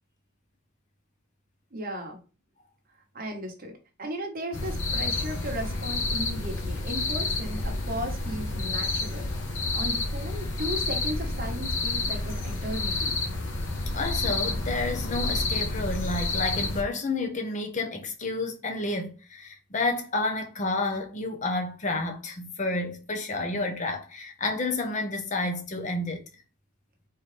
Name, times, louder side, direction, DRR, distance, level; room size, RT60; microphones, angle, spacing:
voice 1, 1.7-2.2 3.1-3.7 4.0-9.3 9.7-13.1, equal, 40° right, 1.2 m, -36 dB
sound 1, 4.5-16.8, left 2 dB, 60° left, 0.9 m, -29 dB
voice 2, 13.9-26.2, left 2 dB, 35° left, 0.8 m, -30 dB
4.2 x 3.9 x 3.2 m
head